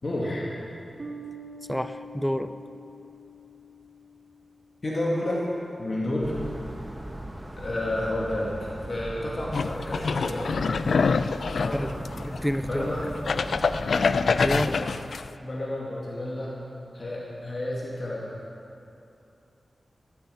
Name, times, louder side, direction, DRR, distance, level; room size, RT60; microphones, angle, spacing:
voice 1, 0.0-0.5 4.8-5.4 5.8-6.3 7.6-8.5 8.9-10.7 11.6-12.0 12.6-13.1 14.5-14.8 15.4-16.6 16.9-18.3, left 1 dB, 40° left, -5 dB, 2.2 m, -30 dB
Bass guitar, 1.0-4.5, right 1 dB, 55° right, 1.4 m, -44 dB
voice 2, 1.7-2.5 11.7-11.9 12.2-12.9 14.4-14.7, equal, ahead, 10 dB, 0.4 m, -28 dB
sound 1, 6.2-14.8, right 1 dB, 20° right, 1.2 m, -38 dB
sound 2, 9.5-12.6 13.0-15.3, left 5 dB, 75° left, 0.4 m, -25 dB
14.5 x 8.6 x 8.5 m, 2.8 s
wide cardioid pair, 120°, 0 cm